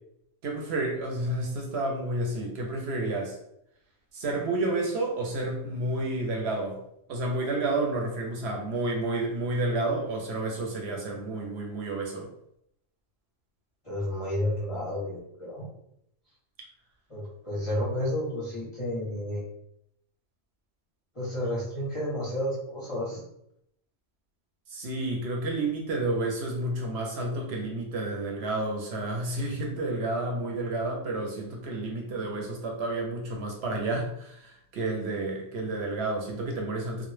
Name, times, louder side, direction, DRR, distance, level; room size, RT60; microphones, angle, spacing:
voice 1, 0.4-3.4 4.1-6.8 7.1-12.3 24.7-37.1, right 2 dB, 70° right, 1 dB, 0.8 m, -30 dB
voice 2, 13.8-15.7 17.1-19.4 21.1-23.3, left 1 dB, 35° left, -7 dB, 0.5 m, -31 dB
2.1 x 2.1 x 3.1 m, 0.76 s
omnidirectional pair, 1.2 m